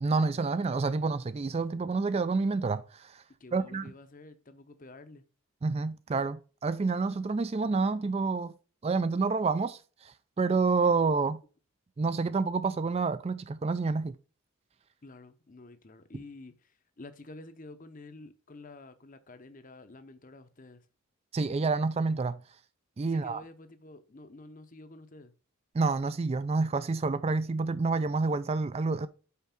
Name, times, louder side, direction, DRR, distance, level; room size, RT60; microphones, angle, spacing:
voice 1, 0.0-3.2 3.5-3.9 5.6-8.5 8.8-11.4 12.0-14.2 21.3-22.4 23.0-23.4 25.7-29.1, right 4 dB, 30° right, 0.3 m, -28 dB
voice 2, 3.4-5.2 15.0-20.8 23.0-25.3, left 2 dB, 35° left, 0.7 m, -49 dB
5.7 x 4.6 x 5.9 m
head